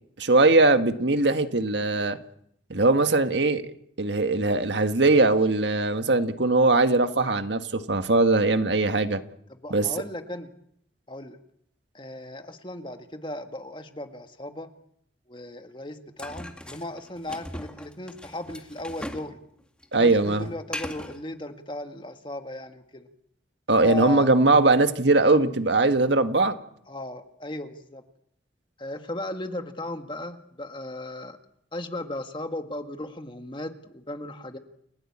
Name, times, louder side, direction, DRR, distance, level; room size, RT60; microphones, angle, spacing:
voice 1, 0.2-2.2 2.7-9.2 9.7-9.9 19.9-20.5 23.7-26.5, right 2 dB, 80° right, 9 dB, 1.6 m, -21 dB
voice 2, 9.5-10.5 11.1-11.4 11.9-14.7 15.3-19.4 19.9-23.1 23.8-24.3 26.9-28.0 28.8-31.4 31.7-34.6, left 1 dB, 25° left, 7 dB, 1.8 m, -36 dB
sound 1, 16.2-19.3 19.6-21.2, left 1 dB, 5° left, 2.0 m, -39 dB
29.5 x 16.5 x 8.7 m, 0.71 s
head